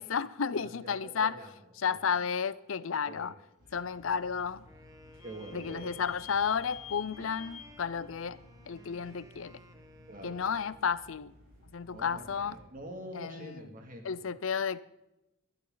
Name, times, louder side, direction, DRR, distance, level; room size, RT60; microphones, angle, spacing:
voice 1, 0.0-1.4 1.8-3.3 3.7-4.6 5.5-8.4 8.7-9.6 10.2-11.3 11.7-12.6 13.1-13.7 14.0-14.8, left 6 dB, 70° left, 18 dB, 0.5 m, -32 dB
voice 2, 0.5-1.5 1.8-2.1 3.1-3.3 5.2-5.9 10.1-10.4 11.9-14.1, right 1 dB, 40° right, 3 dB, 2.4 m, -46 dB
sound 1, 3.6-12.7, left 1 dB, 60° right, 6.4 m, -57 dB
Vehicle / Squeak, 4.0-9.4, left 10 dB, 30° left, 1.4 m, -52 dB
Wind instrument woodwind instrument, 4.6-10.9, equal, 15° right, 1.3 m, -57 dB
21.0 x 12.0 x 3.9 m, 0.93 s
head